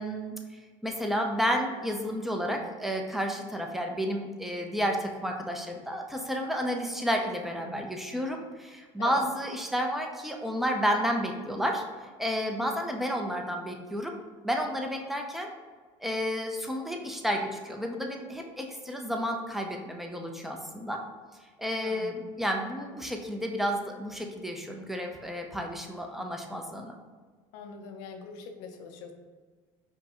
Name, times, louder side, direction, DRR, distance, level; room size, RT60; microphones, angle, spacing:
voice 1, 0.0-14.1 14.4-15.5 16.0-21.0 21.6-27.0, equal, ahead, 2 dB, 0.6 m, -31 dB
voice 2, 21.8-22.1 27.5-29.1, left 5 dB, 70° left, 5 dB, 0.6 m, -42 dB
5.1 x 2.2 x 2.9 m, 1.5 s
hypercardioid pair, 80°, 17 cm